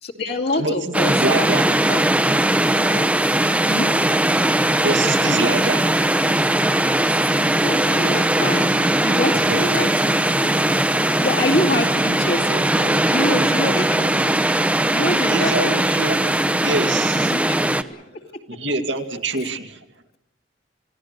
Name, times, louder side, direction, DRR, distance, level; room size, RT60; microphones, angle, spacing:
voice 1, 0.0-1.5 1.9-2.0 2.6-3.1 3.7-3.9 7.1-10.5 11.2-14.5 14.9-15.8 17.1-18.6, left 2 dB, 60° left, 2 dB, 2.4 m, -27 dB
voice 2, 0.6-1.7 4.8-6.1 9.3-9.6 15.2-17.8 18.5-19.8, right 2 dB, 75° right, 6 dB, 2.2 m, -26 dB
sound 1, 0.9-17.8, right 1 dB, 10° right, 0.9 m, -19 dB
29.5 x 17.0 x 6.7 m, 0.87 s
head